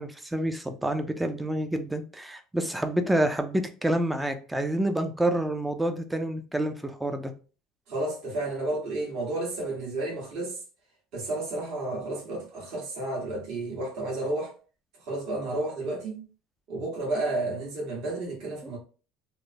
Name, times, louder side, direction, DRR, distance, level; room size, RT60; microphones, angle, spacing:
voice 1, 0.0-7.3 18.6-18.7, right 1 dB, 10° right, 0.4 m, -28 dB
voice 2, 7.9-10.6 11.1-14.5 15.0-16.3 16.7-18.8, right 2 dB, 60° right, 1.4 m, -31 dB
2.9 x 2.1 x 2.7 m
cardioid pair, 125°, 0 cm